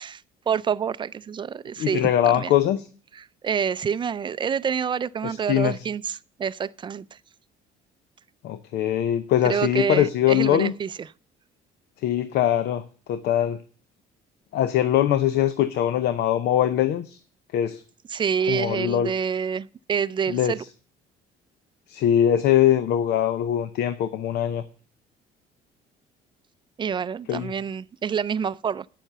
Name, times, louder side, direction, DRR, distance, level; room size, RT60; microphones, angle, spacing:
voice 1, 0.0-2.5 3.1-7.2 9.4-11.1 18.1-20.6 26.8-28.9, right 7 dB, 30° right, 0.4 m, -27 dB
voice 2, 1.8-2.9 5.2-5.7 8.4-10.7 12.0-12.8 13.1-13.6 14.5-17.2 17.5-17.8 18.5-19.1 20.3-20.5 21.9-24.6 27.3-27.5, left 11 dB, 75° left, 0.7 m, -22 dB
9.0 x 7.4 x 6.7 m
cardioid pair, 110°, 17 cm